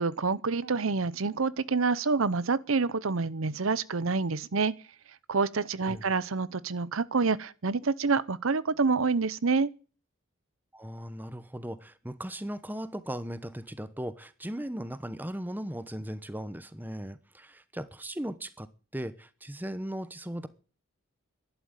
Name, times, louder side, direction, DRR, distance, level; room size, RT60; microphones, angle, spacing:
voice 1, 0.0-4.7 5.3-9.7, right 4 dB, 75° right, 0.7 m, -27 dB
voice 2, 10.7-18.7 18.9-20.5, right 1 dB, 10° right, 0.8 m, -37 dB
12.5 x 11.5 x 8.9 m
head